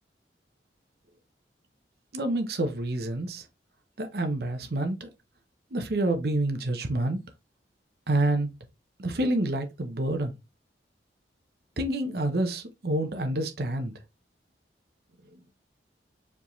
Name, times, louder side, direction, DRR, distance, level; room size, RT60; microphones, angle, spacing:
voice 1, 2.1-3.4 4.0-5.1 5.7-7.2 8.1-8.5 9.0-10.3 11.8-13.9, right 1 dB, 55° right, 0.7 m, -28 dB
4.8 x 3.5 x 3.0 m
head